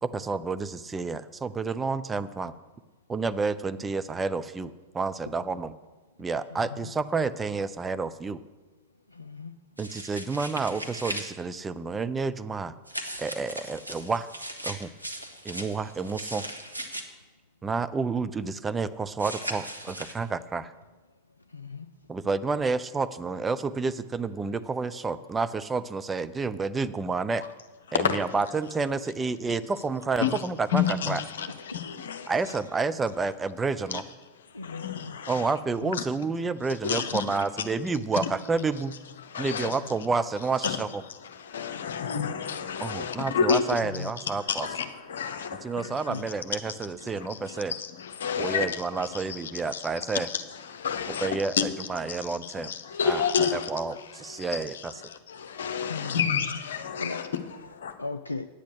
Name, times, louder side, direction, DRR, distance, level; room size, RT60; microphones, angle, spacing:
voice 1, 0.0-2.5 3.1-5.7 6.2-8.4 9.8-12.7 13.2-14.3 14.6-14.9 15.4-16.4 17.6-20.7 22.1-27.4 27.9-31.2 32.3-34.0 35.3-38.9 39.4-40.9 42.8-44.7 45.6-47.7 48.4-50.3 51.2-52.7 53.0-53.2 53.5-54.9, right 4 dB, 15° right, 0.5 m, -29 dB
voice 2, 6.5-6.9 9.1-9.5 21.5-21.9 24.5-24.6 24.9-25.0 31.5-31.6 34.5-35.2 35.8-36.0 39.6-39.9 41.7-42.1 44.0-44.1 45.3-45.5 46.1-46.2 55.8-56.3 57.0-57.2 58.0-58.5, left 4 dB, 80° left, 0.4 m, -38 dB
sound 1, 9.8-11.3 12.9-17.0 19.2-20.1, right 1 dB, 85° right, 1.0 m, -38 dB
voice 3, 27.9-28.2 30.2-32.6 33.9-34.0 34.5-35.6 35.9-36.0 36.8-37.4 39.2-39.8 40.6-40.8 41.1-57.9, left 7 dB, 65° left, 0.9 m, -31 dB
9.8 x 8.3 x 6.3 m
figure-of-eight pair, 90°, 0 cm